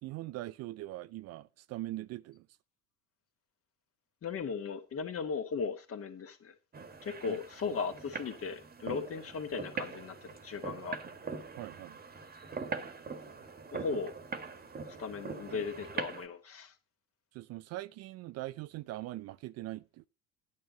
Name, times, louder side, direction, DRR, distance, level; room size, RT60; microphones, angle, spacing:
voice 1, 0.0-2.5 7.3-7.4 7.6-7.8 8.9-9.0 11.6-12.0 17.3-20.1, right 17 dB, 45° right, 0.5 m, -42 dB
voice 2, 4.2-6.5 7.0-11.0 13.7-14.1 15.0-16.7, left 5 dB, 40° left, 2.2 m, -37 dB
sound 1, 6.7-16.3, right 4 dB, 25° right, 1.7 m, -42 dB
10.5 x 9.6 x 4.1 m
hypercardioid pair, 75°, 36 cm